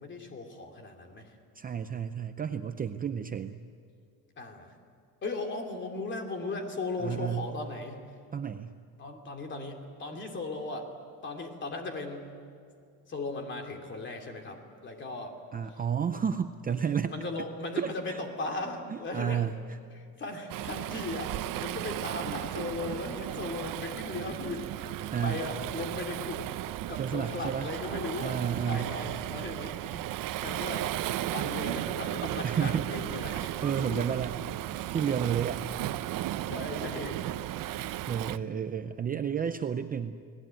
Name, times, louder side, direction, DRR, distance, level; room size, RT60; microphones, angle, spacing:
voice 1, 0.0-1.4 4.4-4.7 5.2-8.0 9.0-10.9 11.2-12.3 13.1-15.4 17.1-19.5 19.9-26.5 26.9-28.4 28.6-30.0 30.4-30.9 31.3-34.1 36.5-37.2, left 3 dB, 30° left, 3 dB, 3.0 m, -37 dB
voice 2, 1.6-3.6 7.0-7.5 8.3-8.8 15.5-17.1 17.8-18.2 18.9-19.8 25.1-25.4 27.0-27.7 28.2-28.9 32.4-32.8 33.2-34.3 34.7-35.6 38.1-40.2, right 7 dB, 25° right, 8 dB, 0.5 m, -31 dB
Waves surf, 20.5-38.4, right 14 dB, 60° right, 0.8 m, -35 dB
30.0 x 19.5 x 9.1 m, 2.3 s
cardioid pair, 170°, 37 cm